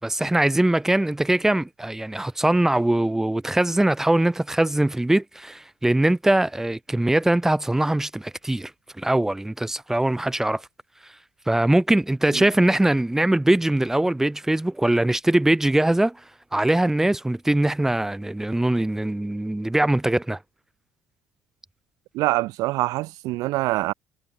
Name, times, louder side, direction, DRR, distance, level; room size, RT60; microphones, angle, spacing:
voice 1, 0.0-8.7 9.0-10.6 11.5-16.2 16.5-20.4, right 1 dB, 5° right, 6.0 m, -22 dB
voice 2, 22.1-23.9, right 19 dB, 85° right, 0.9 m, -24 dB
cardioid pair, 125°, 6 cm